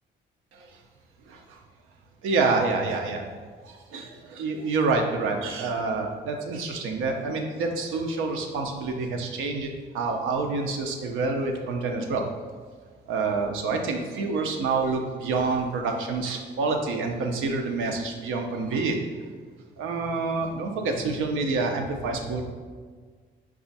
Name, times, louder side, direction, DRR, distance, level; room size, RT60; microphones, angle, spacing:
voice 1, 1.3-1.6 2.2-3.2 3.6-9.7 9.9-12.2 13.1-19.0 19.8-22.5, right 3 dB, 90° right, 2 dB, 0.6 m, -27 dB
4.8 x 2.4 x 4.0 m, 1.5 s
cardioid pair, 90°, 20 cm